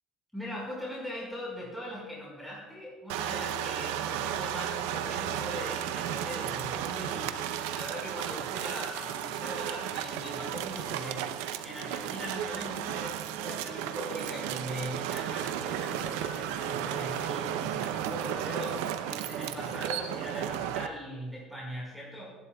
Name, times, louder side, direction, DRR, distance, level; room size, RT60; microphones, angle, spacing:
voice 1, 0.3-7.3 7.7-11.3 11.6-22.4, equal, ahead, -5 dB, 5.3 m, -40 dB
sound 1, 3.1-20.9, right 10 dB, 90° right, 0.8 m, -34 dB
29.5 x 11.5 x 2.4 m, 1.3 s
supercardioid pair, 110°, 0 cm